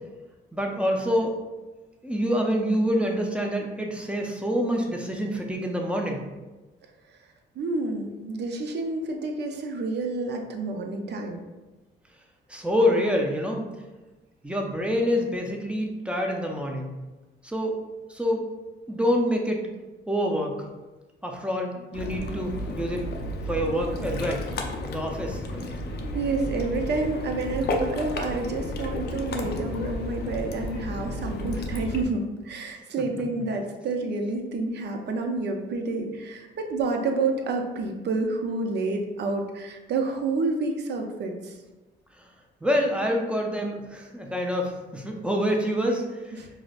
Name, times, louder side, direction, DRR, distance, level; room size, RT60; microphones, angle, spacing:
voice 1, 0.5-1.4 2.0-6.2 12.5-13.7 14.4-16.9 17.4-17.8 18.1-18.5 18.9-19.7 20.1-20.6 21.2-23.0 23.5-24.4 24.8-25.7 42.2-42.3 42.6-46.4, equal, 5° right, 1 dB, 0.5 m, -26 dB
voice 2, 7.6-11.4 26.1-41.6 46.4-46.5, right 3 dB, 60° right, 3 dB, 0.5 m, -29 dB
Ocean, 21.9-32.0, left 1 dB, 55° left, 0.5 m, -32 dB
4.8 x 2.0 x 2.4 m, 1.1 s
cardioid pair, 90°, 20 cm